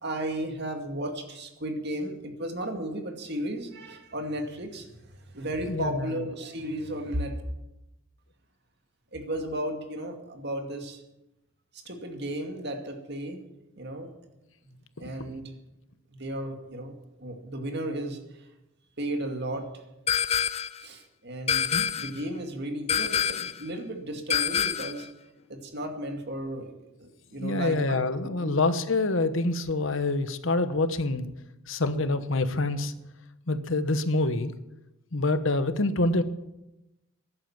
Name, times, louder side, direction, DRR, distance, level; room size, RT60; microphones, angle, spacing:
voice 1, 0.0-7.4 9.1-11.0 11.7-13.4 13.8-14.1 14.6-15.5 16.2-18.4 19.0-19.7 20.8-21.7 22.0-25.1 25.5-26.7 27.0-28.0 28.4-28.6, right 1 dB, 50° right, 4 dB, 2.2 m, -34 dB
voice 2, 5.7-6.2 15.0-15.1 21.7-21.9 27.4-31.3 31.7-32.9 33.5-34.5 35.1-36.2, left 2 dB, 65° left, 11 dB, 1.1 m, -26 dB
sound 1, 20.1-20.8 21.5-22.2 22.9-23.6 24.3-25.0, left 8 dB, 30° left, 0.5 m, -26 dB
14.5 x 11.0 x 7.3 m, 0.94 s
head